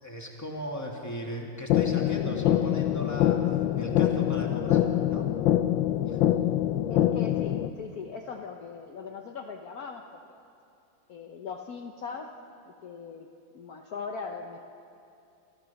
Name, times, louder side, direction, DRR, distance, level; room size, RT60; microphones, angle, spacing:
voice 1, 0.0-4.8 5.1-5.3 6.1-6.2, left 1 dB, 10° left, 0 dB, 2.4 m, -37 dB
sound 1, 1.7-7.7, left 12 dB, 85° left, 1.4 m, -25 dB
voice 2, 6.9-10.4 11.1-12.3 12.6-13.3 13.5-14.6, left 5 dB, 55° left, 3 dB, 1.3 m, -40 dB
27.5 x 14.0 x 7.1 m, 2.7 s
omnidirectional pair, 2.0 m